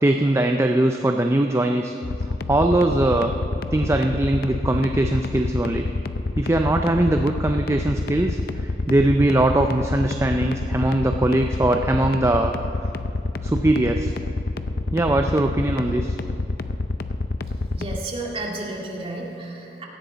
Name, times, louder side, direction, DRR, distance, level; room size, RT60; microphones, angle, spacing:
voice 1, 0.0-1.9 2.2-3.3 3.7-5.9 6.4-12.5 13.4-14.1 14.9-16.2, right 1 dB, 15° right, 4 dB, 0.4 m, -21 dB
sound 1, 2.0-18.0, left 2 dB, 60° left, 0.5 m, -27 dB
voice 2, 17.7-19.8, right 2 dB, 35° right, -2 dB, 2.0 m, -32 dB
17.0 x 14.0 x 4.0 m, 2.7 s
head